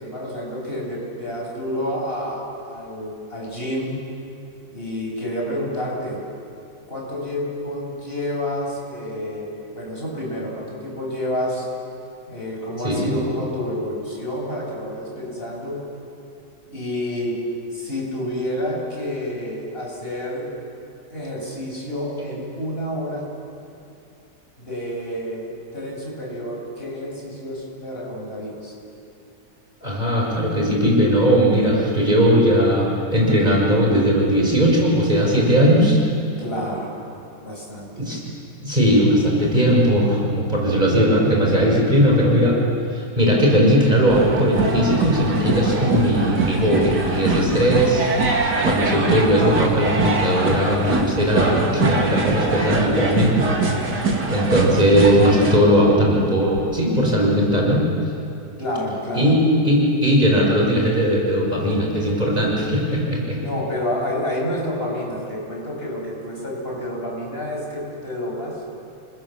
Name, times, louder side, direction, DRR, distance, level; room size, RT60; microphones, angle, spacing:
voice 1, 0.0-4.0 4.7-6.2 6.9-11.7 12.3-15.8 16.7-17.4 17.7-20.5 21.1-23.3 24.6-28.7 36.4-37.0 37.4-37.9 45.3-45.4 58.6-59.3 63.3-68.6, left 1 dB, 35° left, -2 dB, 7.6 m, -29 dB
voice 2, 12.8-13.2 29.8-36.0 38.0-38.2 38.6-42.6 42.9-53.5 54.3-57.8 59.1-59.4 59.6-63.4, equal, 25° right, -2 dB, 5.3 m, -18 dB
sound 1, 44.1-55.6, right 3 dB, 80° right, 3.2 m, -23 dB
30.0 x 25.0 x 7.3 m, 2.6 s
omnidirectional pair, 1.8 m